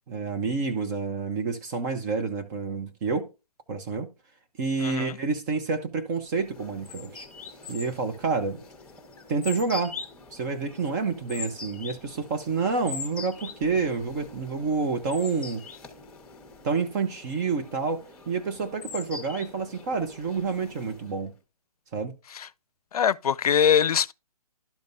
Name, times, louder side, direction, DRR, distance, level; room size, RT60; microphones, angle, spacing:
voice 1, 0.1-3.3 3.7-4.1 4.6-7.3 7.7-8.6 9.3-10.0 10.3-15.6 16.6-21.3 21.9-22.1, right 4 dB, 30° right, 1.1 m, -28 dB
voice 2, 4.8-5.2 22.3-22.5 22.9-24.1, left 8 dB, 70° left, 0.5 m, -23 dB
sound 1, 6.3-21.3, left 4 dB, 5° left, 1.5 m, -43 dB
12.0 x 5.2 x 2.7 m
hypercardioid pair, 150°, 20 cm